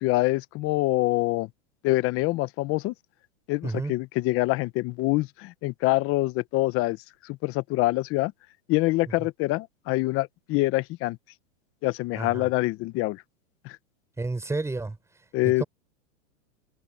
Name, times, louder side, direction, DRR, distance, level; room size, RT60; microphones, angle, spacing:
voice 1, 0.0-1.5 1.8-2.9 3.5-7.0 7.2-8.3 8.7-11.2 11.8-13.2 13.6-13.8 15.3-15.6, left 20 dB, 35° left, 1.1 m, -25 dB
voice 2, 3.6-3.9 12.1-12.5 14.2-15.0 15.4-15.6, right 3 dB, 5° right, 5.7 m, -30 dB
hypercardioid pair, 135°, 40 cm